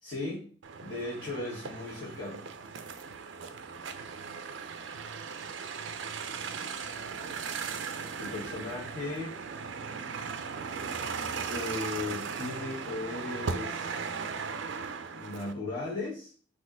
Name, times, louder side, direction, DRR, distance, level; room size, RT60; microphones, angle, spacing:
voice 1, 0.0-0.5 0.8-2.5 8.2-9.4 11.5-14.1 15.1-16.3, left 2 dB, 45° left, -9 dB, 1.6 m, -37 dB
sound 1, 0.6-15.5, right 5 dB, 65° right, 0.4 m, -37 dB
4.1 x 2.7 x 3.8 m, 0.39 s
head